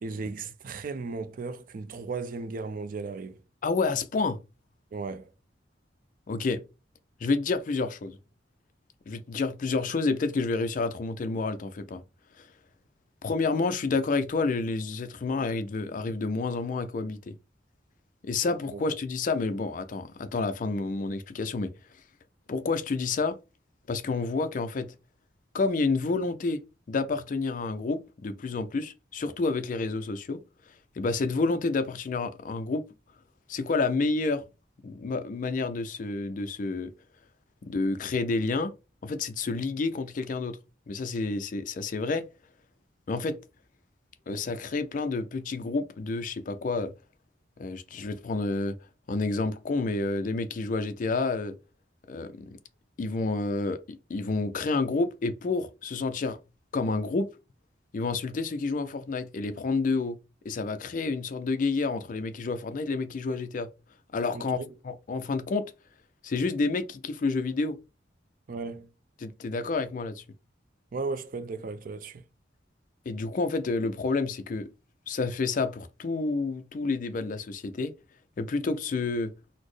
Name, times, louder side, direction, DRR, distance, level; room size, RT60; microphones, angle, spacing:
voice 1, 0.0-3.4 4.9-5.3 18.7-18.8 64.3-64.7 68.5-68.9 70.9-72.2, right 4 dB, 50° right, 0.4 m, -35 dB
voice 2, 3.6-4.4 6.3-6.6 7.2-8.2 9.1-12.0 12.4-12.5 13.2-17.3 18.2-21.7 22.5-23.4 23.9-24.9 25.5-26.6 26.9-30.4 31.0-32.8 33.5-34.4 34.8-36.9 37.6-38.7 39.0-40.6 40.9-42.3 43.1-43.4 44.3-46.9 47.6-48.8 49.1-51.6 52.1-52.6 53.0-56.4 56.7-57.3 57.9-60.2 60.4-63.7 64.1-65.7 66.2-67.8 69.2-70.2 73.1-74.7 75.1-77.9 78.4-79.3, left 3 dB, 45° left, 0.4 m, -29 dB
4.1 x 2.0 x 3.1 m
head